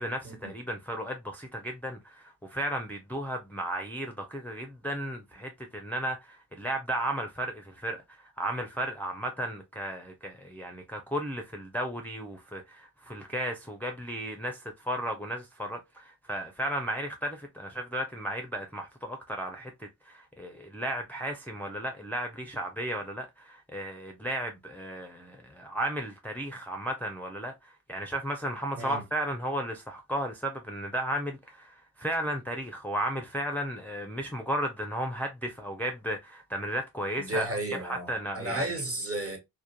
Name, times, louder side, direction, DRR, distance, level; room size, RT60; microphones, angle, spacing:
voice 1, 0.0-38.7, right 1 dB, 5° left, 0.4 m, -34 dB
voice 2, 37.2-39.4, right 1 dB, 35° right, 1.2 m, -33 dB
2.3 x 2.2 x 2.8 m
cardioid pair, 60°, 38 cm